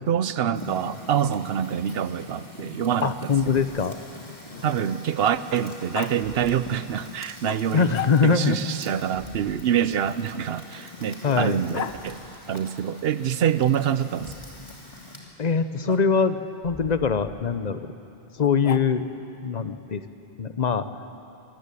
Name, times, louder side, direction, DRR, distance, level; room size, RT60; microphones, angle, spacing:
voice 1, 0.1-3.7 4.6-7.9 8.2-12.2 12.5-14.4, right 9 dB, 70° right, 14 dB, 0.9 m, -26 dB
Fire, 0.5-15.2, left 2 dB, 25° left, 2.6 m, -44 dB
Growling, 1.8-5.2 5.9-6.1 7.4-8.5 9.9-12.0 13.8-14.5 15.8-16.0 18.4-19.2, left 9 dB, 80° left, 1.0 m, -39 dB
voice 2, 3.0-4.0 7.7-8.6 11.2-11.6 15.4-17.8 18.4-19.1 19.4-20.0 20.4-20.9, left 5 dB, 45° left, 11 dB, 0.9 m, -23 dB
Thump thud, 6.8-6.9 9.1-9.6 11.9-12.3 14.2-14.8 16.6-17.6, left 1 dB, 20° right, 6.8 m, -46 dB
23.5 x 14.0 x 8.4 m, 2.8 s
omnidirectional pair, 1.1 m